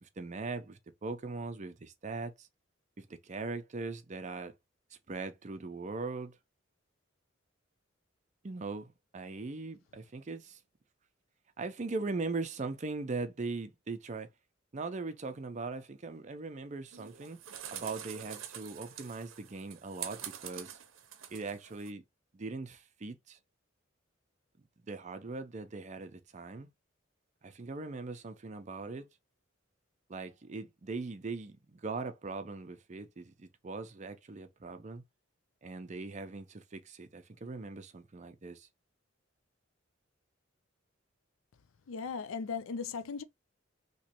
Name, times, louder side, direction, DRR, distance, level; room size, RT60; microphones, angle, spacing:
voice 1, 0.0-2.5 3.0-4.5 4.9-6.4 8.4-10.6 11.6-14.3 14.7-17.4 17.7-20.8 21.3-22.0 22.3-23.4 24.9-26.7 27.4-29.1 30.1-35.0 35.6-38.7, right 3 dB, 35° right, 0.5 m, -40 dB
sound 1, 16.9-21.9, right 10 dB, 80° right, 0.6 m, -46 dB
voice 2, 41.9-43.2, left 5 dB, 85° left, 0.4 m, -37 dB
3.1 x 2.9 x 2.9 m
head